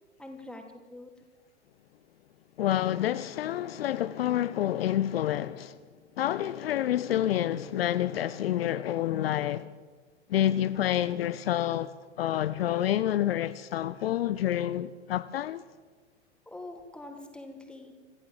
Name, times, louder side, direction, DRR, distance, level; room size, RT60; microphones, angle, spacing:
voice 1, 0.2-1.1 16.5-17.9, left 2 dB, 5° left, 3.5 m, -44 dB
voice 2, 2.6-5.8 6.2-9.7 10.3-11.9 12.2-15.6, left 12 dB, 55° left, 0.8 m, -28 dB
26.5 x 15.0 x 7.6 m
figure-of-eight pair, 95°, 35 cm